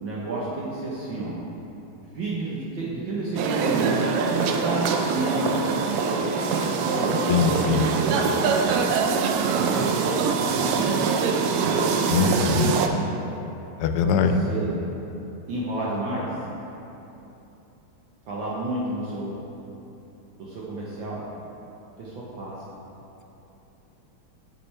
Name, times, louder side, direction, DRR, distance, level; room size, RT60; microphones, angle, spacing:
voice 1, 0.0-1.3 2.1-5.6 6.0-7.5 7.8-8.4 9.6-11.3 11.7-12.0 14.0-14.8 15.5-16.3 18.3-19.4 20.4-21.3 22.0-22.5, right 2 dB, 65° right, -6 dB, 1.6 m, -31 dB
sound 1, 3.4-12.9, right 5 dB, 85° right, 1.5 m, -23 dB
voice 2, 7.3-7.9 12.1-12.8 13.8-14.3, left 6 dB, 85° left, 7 dB, 1.5 m, -22 dB
9.0 x 7.4 x 3.2 m, 2.9 s
omnidirectional pair, 2.4 m